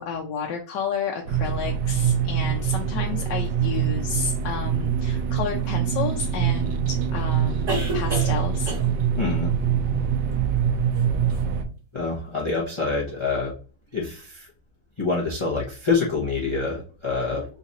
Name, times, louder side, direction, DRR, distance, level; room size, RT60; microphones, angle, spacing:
voice 1, 0.0-8.7, left 6 dB, 85° left, 2 dB, 1.2 m, -31 dB
sound 1, 1.3-11.6, right 8 dB, 80° right, 1.3 m, -24 dB
sound 2, 5.6-5.7 7.7-8.4 8.7-9.0 10.9-11.0 11.3-11.4, right 2 dB, 45° right, 1.8 m, -29 dB
voice 2, 9.2-9.5 11.9-13.5 13.9-14.5 15.0-17.5, left 4 dB, 25° left, -3 dB, 0.6 m, -26 dB
3.9 x 2.5 x 4.1 m, 0.38 s
omnidirectional pair, 1.9 m